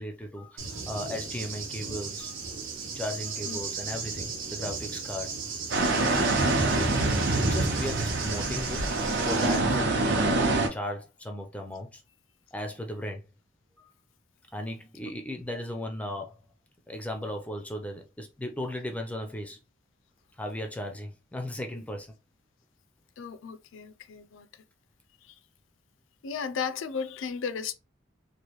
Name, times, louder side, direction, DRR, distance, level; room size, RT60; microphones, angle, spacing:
voice 1, 0.0-2.3 2.9-5.3 6.1-6.3 7.4-8.9 9.3-12.0 12.5-13.3 13.8-13.9 14.5-16.4 16.9-19.6 20.4-22.2, left 1 dB, 5° left, 0.4 m, -36 dB
Cricket / Thunder, 0.6-9.6, right 3 dB, 90° right, 1.1 m, -32 dB
sound 1, 5.7-10.7, right 2 dB, 60° right, 0.7 m, -26 dB
voice 2, 23.2-24.5 25.3-25.4 26.2-27.7, left 6 dB, 75° left, 0.4 m, -35 dB
3.1 x 2.5 x 3.0 m
head